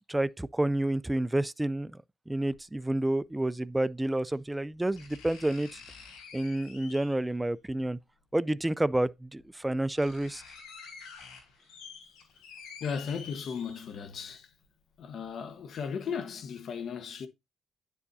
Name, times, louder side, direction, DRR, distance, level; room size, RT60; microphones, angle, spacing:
voice 1, 0.1-5.8 6.3-8.0 8.3-10.4, right 1 dB, 10° right, 0.4 m, -29 dB
sound 1, 2.5-2.6 4.1-4.2 4.9-7.3 8.7-8.8 9.4-9.5 9.7-14.2 14.6-14.7, left 5 dB, 90° left, 3.8 m, -49 dB
voice 2, 12.8-14.5 15.0-17.3, left 6 dB, 60° left, 1.2 m, -36 dB
9.8 x 7.1 x 2.7 m
cardioid pair, 90°, 0 cm